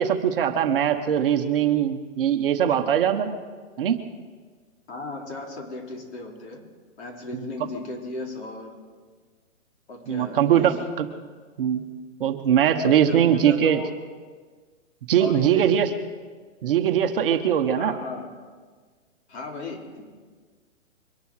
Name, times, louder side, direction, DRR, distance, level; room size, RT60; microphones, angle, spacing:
voice 1, 0.0-3.4 3.8-4.0 7.3-7.5 10.1-11.1 11.6-11.9 12.2-13.8 15.1-15.9 16.6-17.9, right 9 dB, 45° right, 7 dB, 1.1 m, -21 dB
voice 2, 4.9-6.6 7.0-8.8 9.9-10.8 12.8-13.9 15.2-15.8 17.8-18.3 19.3-20.0, left 3 dB, 55° left, 0 dB, 3.8 m, -36 dB
24.0 x 11.0 x 4.8 m, 1.5 s
hypercardioid pair, 155°, 40 cm